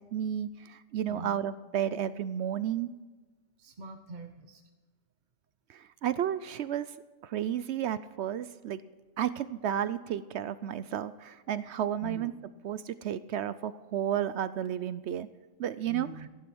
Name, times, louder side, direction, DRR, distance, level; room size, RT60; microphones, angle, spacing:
voice 1, 0.1-2.9 5.7-6.9 7.2-8.8 9.2-12.3 12.6-15.3 15.6-16.1, right 10 dB, 70° right, 15 dB, 0.8 m, -32 dB
voice 2, 1.1-1.4 3.6-4.6 12.0-12.3 15.9-16.3, right 3 dB, 40° right, 5 dB, 1.0 m, -43 dB
15.0 x 11.0 x 6.1 m, 1.3 s
omnidirectional pair, 1.3 m